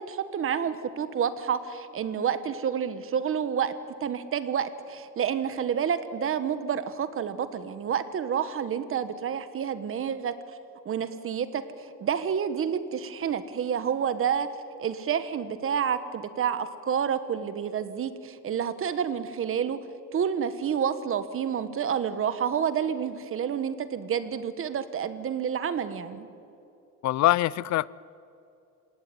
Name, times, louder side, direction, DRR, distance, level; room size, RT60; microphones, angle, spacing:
voice 1, 0.0-3.7 4.0-10.3 10.8-14.5 14.8-19.8 20.1-26.3, right 8 dB, 45° right, 1.5 m, -29 dB
voice 2, 27.0-27.9, left 15 dB, 60° left, 0.5 m, -23 dB
28.5 x 17.5 x 9.5 m
cardioid pair, 155°, 31 cm